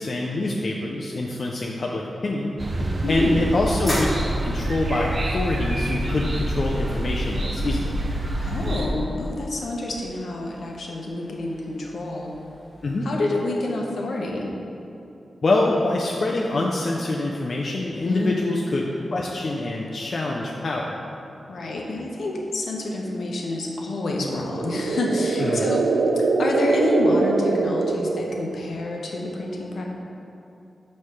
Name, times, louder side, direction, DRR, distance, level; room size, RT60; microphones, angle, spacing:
voice 1, 0.0-2.6 3.1-4.1 4.4-8.0 12.8-13.1 15.4-21.0 25.4-25.7, left 2 dB, 40° left, -2 dB, 0.4 m, -25 dB
sound 1, 2.4-13.2, equal, 15° left, 1.4 m, -39 dB
sound 2, 2.6-8.9, right 1 dB, 30° right, 0.5 m, -26 dB
voice 2, 2.8-3.6 8.4-12.3 13.0-14.5 18.1-18.6 21.5-25.8 26.2-29.8, left 2 dB, 65° left, -1 dB, 0.8 m, -28 dB
sound 3, 24.4-28.7, right 3 dB, 90° right, 0.3 m, -23 dB
6.4 x 3.2 x 5.6 m, 2.7 s
wide cardioid pair, 165°, 0 cm